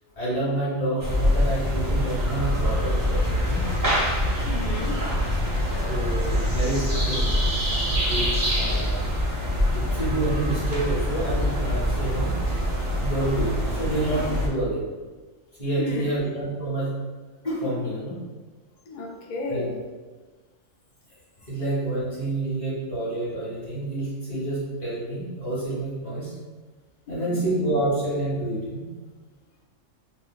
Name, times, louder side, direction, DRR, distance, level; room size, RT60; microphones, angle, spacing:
voice 1, 0.2-3.6 5.9-7.3 8.1-9.1 9.7-12.3 13.0-14.9 15.6-17.0 17.4-18.2 19.5-19.7 21.5-26.3 27.1-28.9, right 2 dB, 35° left, -8 dB, 1.0 m, -28 dB
sound 1, 1.0-14.5, left 1 dB, 25° right, 0.4 m, -25 dB
sound 2, 1.8-8.3, right 1 dB, 60° left, 1.3 m, -30 dB
voice 2, 3.9-6.5 6.9-7.0 15.8-16.3 18.9-19.8 21.4-21.5 27.1-27.5, left 2 dB, 75° left, 0 dB, 0.4 m, -35 dB
2.9 x 2.1 x 3.4 m, 1.3 s
omnidirectional pair, 1.3 m